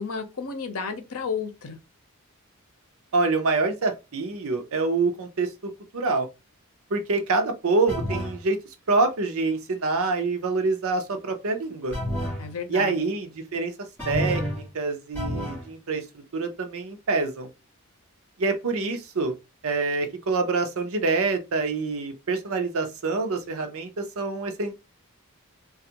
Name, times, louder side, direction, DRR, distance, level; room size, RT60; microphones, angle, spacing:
voice 1, 0.0-1.8 12.4-13.0, left 5 dB, 70° left, 0.7 m, -32 dB
voice 2, 3.1-6.3 6.9-8.6 8.9-12.0 12.7-13.7 14.0-16.0 16.3-17.5 18.4-19.3 19.6-24.7, right 3 dB, 65° right, 0.6 m, -26 dB
sound 1, 7.9-8.4 11.9-12.5 14.0-14.7 15.1-15.7, equal, 10° left, 1.6 m, -29 dB
3.3 x 2.4 x 2.8 m
head